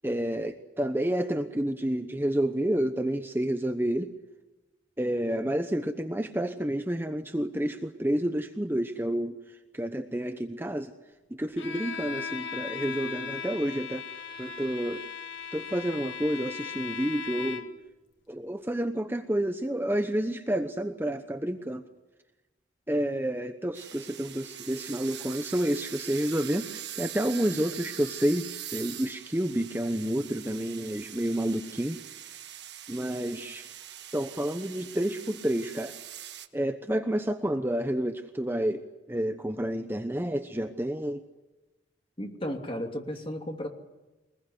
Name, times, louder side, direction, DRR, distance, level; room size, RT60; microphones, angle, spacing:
voice 1, 0.0-4.1 5.0-9.4 9.7-10.9 11.4-14.0 14.4-15.0 15.5-17.7 18.3-21.8 22.9-32.0 32.9-33.7 34.1-35.9 36.5-38.8 39.1-41.2, right 1 dB, 10° right, 7 dB, 0.9 m, -29 dB
Bowed string instrument, 11.6-17.9, left 6 dB, 90° left, 2.6 m, -38 dB
sound 1, 23.7-36.5, right 11 dB, 65° right, 1.6 m, -42 dB
voice 2, 42.2-43.7, equal, 30° left, 3 dB, 2.8 m, -34 dB
23.5 x 20.5 x 9.8 m, 1.1 s
head